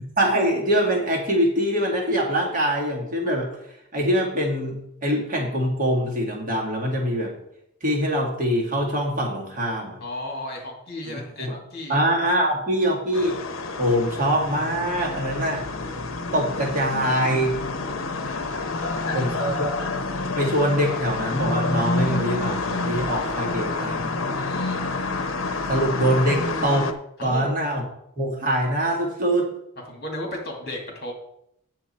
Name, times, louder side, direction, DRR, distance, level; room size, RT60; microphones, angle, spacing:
voice 1, 0.2-3.5 3.9-7.4 7.8-10.0 11.1-11.6 11.9-13.4 13.8-15.6 16.3-17.5 19.1-19.7 20.4-24.1 25.7-26.9 27.2-27.8 28.2-29.5, equal, 40° right, -2 dB, 2.2 m, -23 dB
voice 2, 10.0-12.0 18.7-19.3 24.3-24.9 27.2-27.5 29.9-31.1, left 1 dB, 45° left, 0 dB, 2.3 m, -34 dB
sound 1, 13.1-26.9, left 3 dB, 70° left, 0.8 m, -28 dB
9.0 x 7.4 x 4.4 m, 0.78 s
head